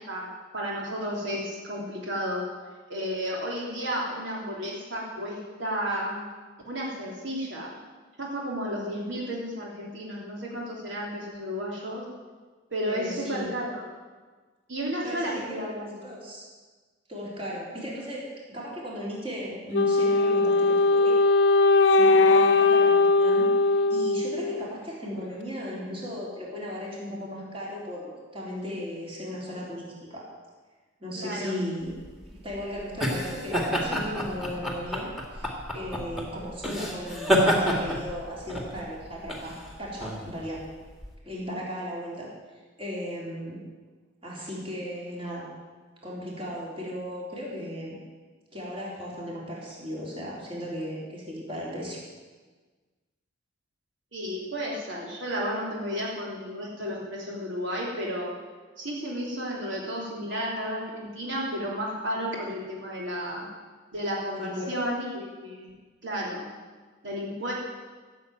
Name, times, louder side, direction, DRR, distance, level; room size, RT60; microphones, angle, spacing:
voice 1, 0.0-2.4 2.9-6.3 6.6-7.7 8.2-12.0 12.7-13.8 14.7-16.1 31.1-31.5 54.1-58.3 58.8-63.4 63.9-65.7 66.0-66.4 67.0-67.5, equal, 70° right, -3 dB, 3.1 m, -32 dB
voice 2, 12.9-13.5 15.0-15.4 15.8-16.4 17.1-18.2 18.5-21.2 21.9-30.3 31.0-31.9 32.3-40.6 41.3-42.3 42.8-43.6 44.2-45.5 46.0-48.0 48.5-52.0 64.3-64.7, equal, 30° right, -5 dB, 4.0 m, -36 dB
Wind instrument woodwind instrument, 19.7-24.8, left 3 dB, 70° left, 0.8 m, -20 dB
sound 1, 31.9-41.1, equal, ahead, 2.0 m, -29 dB
15.5 x 7.5 x 9.0 m, 1.4 s
head